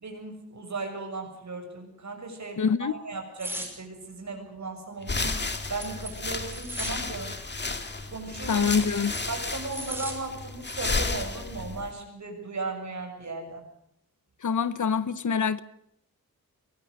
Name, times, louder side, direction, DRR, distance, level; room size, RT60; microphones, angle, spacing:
voice 1, 0.0-7.4 8.1-8.7 9.3-13.7, right 3 dB, 55° right, 6.8 m, -36 dB
voice 2, 2.6-2.9 8.5-9.1 14.4-15.6, left 6 dB, 60° left, 1.0 m, -25 dB
sound 1, 3.4-3.7 5.2-7.0 8.4-10.2 10.6-10.8, right 1 dB, 5° right, 5.5 m, -38 dB
sound 2, 5.0-11.9, left 3 dB, 30° left, 2.0 m, -33 dB
24.0 x 20.0 x 6.5 m
wide cardioid pair, 145°, 34 cm